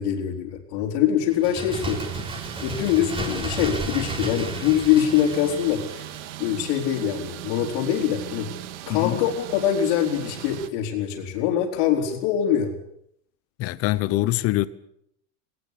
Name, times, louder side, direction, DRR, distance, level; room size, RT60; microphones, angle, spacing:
voice 1, 0.0-2.0 2.6-6.0 6.4-8.5 8.9-12.7, left 10 dB, 65° left, 4.0 m, -23 dB
Bird, 1.3-6.8 7.1-7.2, right 2 dB, 15° right, 3.6 m, -33 dB
sound 1, 1.7-10.7, right 13 dB, 75° right, 2.0 m, -38 dB
voice 2, 13.6-14.7, left 17 dB, 40° left, 1.1 m, -23 dB
19.5 x 19.0 x 8.5 m
supercardioid pair, 150°, 37 cm